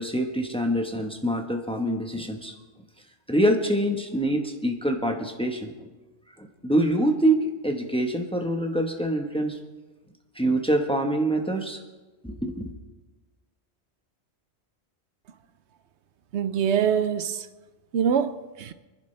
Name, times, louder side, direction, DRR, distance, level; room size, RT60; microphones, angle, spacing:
voice 1, 0.0-2.5 3.3-5.9 6.4-9.6 10.3-11.8 12.2-12.7, right 1 dB, 5° left, 1.1 m, -25 dB
voice 2, 16.3-17.5 17.9-18.7, right 8 dB, 85° right, 1.0 m, -24 dB
24.5 x 10.5 x 3.3 m
omnidirectional pair, 1.1 m